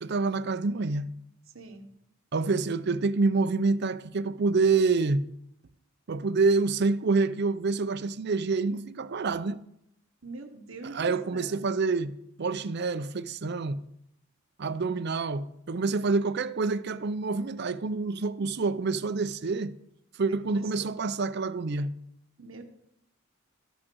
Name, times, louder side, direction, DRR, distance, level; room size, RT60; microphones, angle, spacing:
voice 1, 0.0-1.1 2.3-5.2 6.1-9.6 10.8-12.1 12.4-13.8 14.6-19.7 20.2-21.9, right 4 dB, 55° right, 0.6 m, -27 dB
voice 2, 1.5-1.9 10.2-11.7 20.5-21.0 22.4-22.6, right 3 dB, 85° right, 1.3 m, -43 dB
13.0 x 6.2 x 6.2 m
head